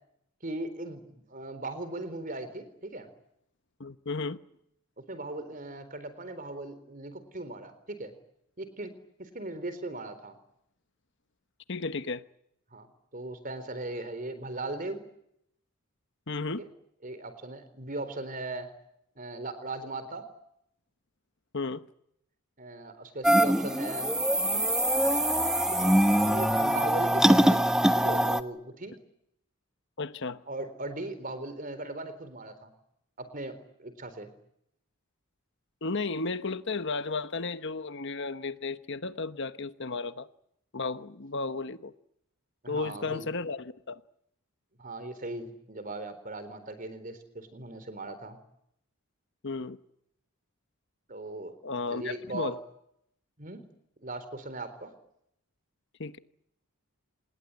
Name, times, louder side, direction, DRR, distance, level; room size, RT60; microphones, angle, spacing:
voice 1, 0.4-3.1 5.0-8.1 8.6-8.9 9.2-10.4 12.7-12.9 13.1-15.0 16.6-16.7 17.0-18.7 19.2-20.3 22.6-24.1 24.9-25.0 25.7-27.6 27.9-29.0 30.5-32.7 33.2-34.3 42.6-43.3 44.8-48.4 51.1-51.6 51.9-52.6 53.4-53.6 54.0-54.9, right 2 dB, 40° right, 4.0 m, -38 dB
voice 2, 3.8-4.4 11.7-12.2 16.3-16.7 21.5-21.8 30.0-30.4 35.8-40.3 40.7-41.9 42.7-44.0 49.4-49.8 51.6-52.6 56.0-56.2, left 3 dB, 55° left, 1.1 m, -34 dB
sound 1, 23.2-28.4, right 1 dB, 5° right, 1.0 m, -23 dB
28.0 x 20.5 x 9.1 m
head